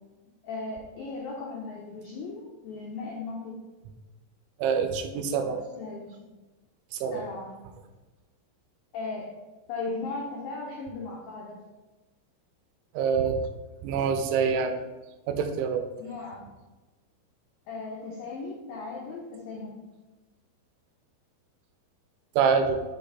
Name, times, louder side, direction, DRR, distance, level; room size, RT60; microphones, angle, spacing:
voice 1, 0.4-3.6 5.4-6.3 7.1-7.5 8.9-9.3 9.7-11.6 16.0-16.4 17.7-19.8, left 3 dB, 90° left, -3 dB, 2.0 m, -37 dB
voice 2, 4.6-5.6 6.9-7.2 12.9-13.4 13.8-14.8 15.3-15.9 22.4-22.8, right 6 dB, 90° right, 7 dB, 3.0 m, -25 dB
8.3 x 3.3 x 4.0 m, 1.1 s
omnidirectional pair, 5.3 m